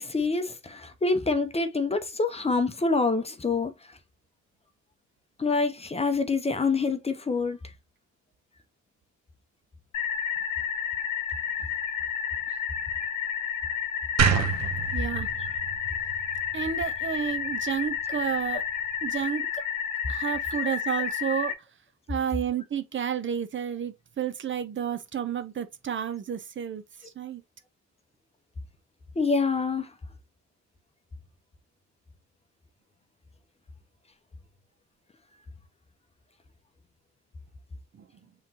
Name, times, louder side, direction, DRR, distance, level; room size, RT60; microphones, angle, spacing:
voice 1, 0.0-4.0 5.4-7.6 15.4-15.5 29.2-29.9, left 3 dB, 20° left, 0.7 m, -26 dB
sound 1, 9.9-21.5, left 8 dB, 80° left, 0.9 m, -31 dB
sound 2, 14.2-17.3, right 6 dB, 60° right, 0.9 m, -28 dB
voice 2, 14.9-15.3 16.5-18.6 19.0-19.4 20.1-21.5 22.1-27.4 38.0-38.1, right 8 dB, 40° right, 0.6 m, -31 dB
5.6 x 3.1 x 2.8 m
cardioid pair, 90°, 30 cm